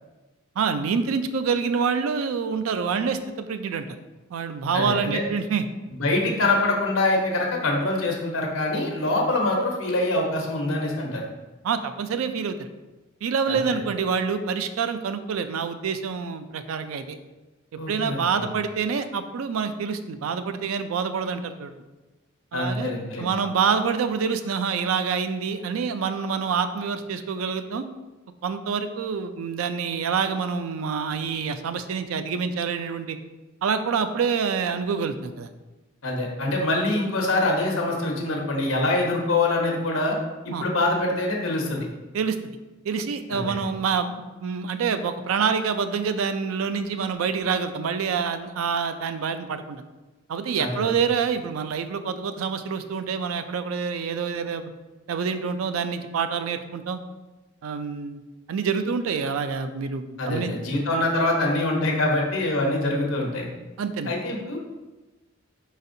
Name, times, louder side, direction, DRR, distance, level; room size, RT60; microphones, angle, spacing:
voice 1, 0.6-3.8 4.3-5.6 11.6-12.7 13.2-17.2 17.9-21.7 22.5-22.9 23.2-27.9 28.4-33.2 33.6-35.5 40.5-40.6 42.1-42.4 42.9-49.8 50.3-54.7 55.1-57.0 57.6-58.2 58.5-60.5 63.8-64.1, right 6 dB, 80° right, 10 dB, 0.4 m, -27 dB
voice 2, 4.7-5.2 5.9-11.2 13.5-13.8 17.8-18.5 22.5-23.3 36.0-40.2 40.4-41.9 43.3-43.5 50.6-50.9 60.2-63.5 64.1-64.6, left 2 dB, 75° left, 0 dB, 0.9 m, -24 dB
5.0 x 4.0 x 2.6 m, 1.1 s
head